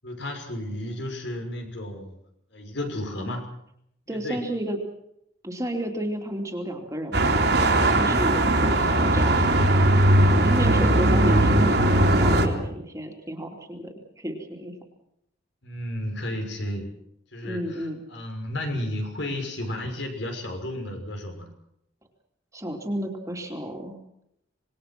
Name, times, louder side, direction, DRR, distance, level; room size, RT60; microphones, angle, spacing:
voice 1, 0.0-2.1 2.5-3.5 4.1-4.5 8.2-8.4 15.6-16.9 17.3-21.5, left 1 dB, 65° left, 4 dB, 6.4 m, -33 dB
voice 2, 4.1-4.8 5.4-7.3 7.8-9.5 10.3-14.7 17.4-18.0 22.5-24.0, equal, 15° right, 2 dB, 3.0 m, -31 dB
sound 1, 7.1-12.5, right 1 dB, 55° right, 3.1 m, -19 dB
26.5 x 20.5 x 6.1 m, 0.75 s
head